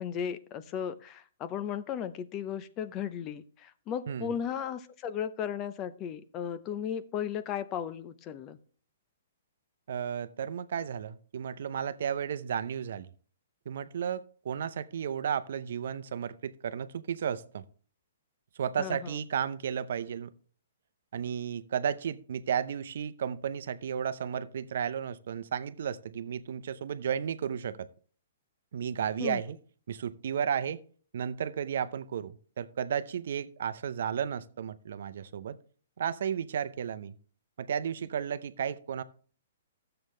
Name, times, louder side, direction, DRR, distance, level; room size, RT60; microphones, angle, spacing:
voice 1, 0.0-8.6 18.8-19.2 29.2-29.4, left 8 dB, 25° left, 0.6 m, -35 dB
voice 2, 9.9-13.1 13.7-17.6 18.6-20.3 21.1-27.9 28.7-29.6 29.9-30.8 31.1-35.6 36.0-37.1 37.6-39.0, right 8 dB, 65° right, 0.7 m, -33 dB
12.5 x 7.8 x 3.2 m
hypercardioid pair, 145°, 0 cm